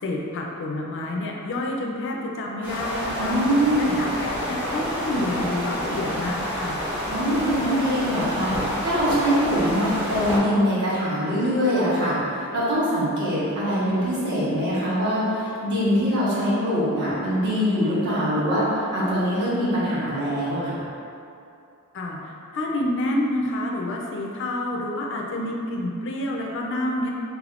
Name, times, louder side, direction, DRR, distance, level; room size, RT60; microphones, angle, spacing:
voice 1, 0.0-3.4 3.8-6.8 21.9-27.1, left 1 dB, 60° left, 0 dB, 0.4 m, -28 dB
sound 1, 2.6-10.4, equal, 10° right, 0.9 m, -29 dB
voice 2, 3.1-4.0 7.1-20.8, equal, 55° right, -10 dB, 1.2 m, -23 dB
3.4 x 3.3 x 2.4 m, 2.6 s
head